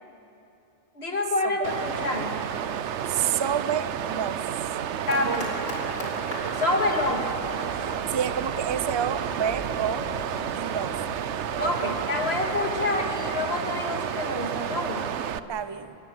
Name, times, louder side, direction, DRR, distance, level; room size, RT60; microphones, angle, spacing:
voice 1, 1.0-2.5 5.1-5.5 6.5-7.3 11.6-15.1, left 2 dB, 50° left, 2 dB, 2.5 m, -27 dB
Water, 1.6-15.4, right 9 dB, 65° right, 0.9 m, -31 dB
voice 2, 3.1-4.4 4.7-4.8 5.1-5.4 8.1-10.1 10.5-11.0 11.5-11.9 15.5-16.0, right 9 dB, 30° right, 13 dB, 0.5 m, -29 dB
sound 1, 5.1-12.3, left 1 dB, 70° left, 4.1 m, -40 dB
sound 2, 5.9-13.6, right 1 dB, 45° right, 3.5 m, -46 dB
25.0 x 21.5 x 8.0 m, 2.9 s
omnidirectional pair, 1.4 m